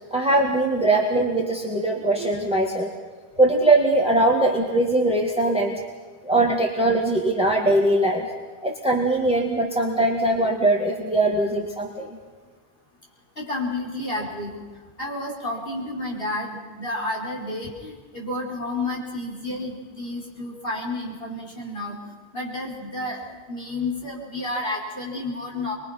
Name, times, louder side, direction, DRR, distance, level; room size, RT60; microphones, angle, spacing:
voice 1, 0.1-2.9 3.4-5.8 6.2-8.3 8.6-12.2, right 2 dB, 5° right, 1 dB, 2.1 m, -21 dB
voice 2, 13.4-14.6 15.0-22.0 22.3-25.8, left 2 dB, 65° left, -2 dB, 5.2 m, -31 dB
25.0 x 22.5 x 5.9 m, 1.4 s
omnidirectional pair, 1.0 m